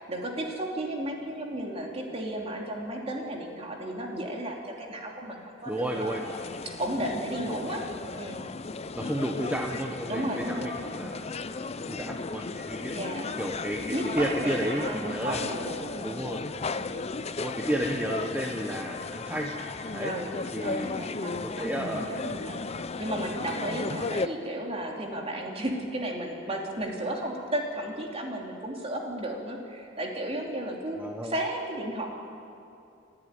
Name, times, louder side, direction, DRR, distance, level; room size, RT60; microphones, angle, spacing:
voice 1, 0.0-6.2 6.6-7.8 8.1-8.5 10.1-10.7 12.9-13.3 13.9-16.3 16.7-17.0 20.0-32.1, right 1 dB, 30° right, 0 dB, 3.0 m, -34 dB
sound 1, 5.6-24.3, left 3 dB, 35° left, 0.6 m, -35 dB
voice 2, 5.7-6.2 8.9-12.9 13.4-15.5 16.0-16.4 17.4-19.5 19.9-20.1 20.5-20.9 21.4-22.1 31.0-31.3, right 1 dB, 10° right, 1 dB, 1.1 m, -32 dB
28.5 x 11.5 x 9.7 m, 2.6 s
head